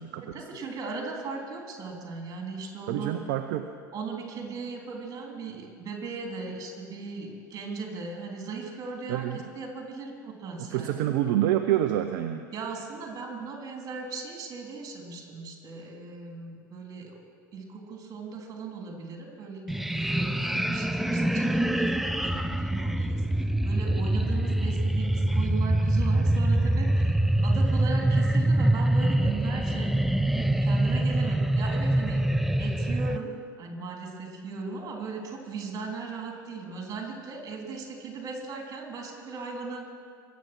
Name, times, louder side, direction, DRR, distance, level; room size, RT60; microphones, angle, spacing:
voice 1, 0.2-3.2 3.9-10.9 12.5-17.2 17.5-29.9 30.6-32.2 32.6-33.3 33.6-39.9, right 4 dB, 35° right, 1 dB, 3.6 m, -38 dB
voice 2, 2.9-3.7 9.1-9.4 10.6-12.5, right 12 dB, 55° right, 7 dB, 0.7 m, -27 dB
sound 1, 19.7-33.2, right 1 dB, ahead, 0.5 m, -25 dB
22.5 x 8.4 x 6.2 m, 2.1 s
figure-of-eight pair, 75°, 11 cm